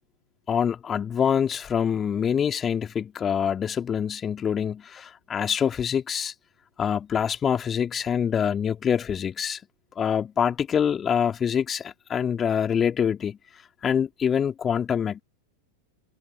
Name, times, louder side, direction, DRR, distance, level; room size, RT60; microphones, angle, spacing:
voice 1, 0.5-6.3 6.8-9.6 10.0-13.4 13.8-15.2, left 8 dB, 20° left, 3.6 m, -25 dB
open air
figure-of-eight pair, 90°, 0 cm